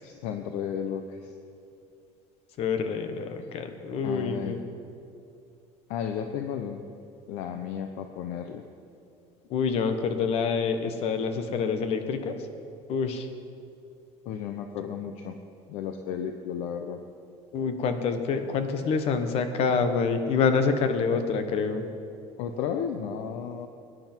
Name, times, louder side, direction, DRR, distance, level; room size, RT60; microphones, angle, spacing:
voice 1, 0.0-1.3 4.0-4.6 5.9-6.8 7.3-8.6 14.3-15.4 15.7-17.0 22.4-23.7, left 8 dB, 80° left, 6 dB, 0.8 m, -33 dB
voice 2, 2.6-4.6 9.5-12.3 12.9-13.3 17.5-21.8, left 5 dB, 55° left, 8 dB, 1.3 m, -27 dB
20.5 x 10.5 x 4.5 m, 2.6 s
cardioid pair, 140°, 12 cm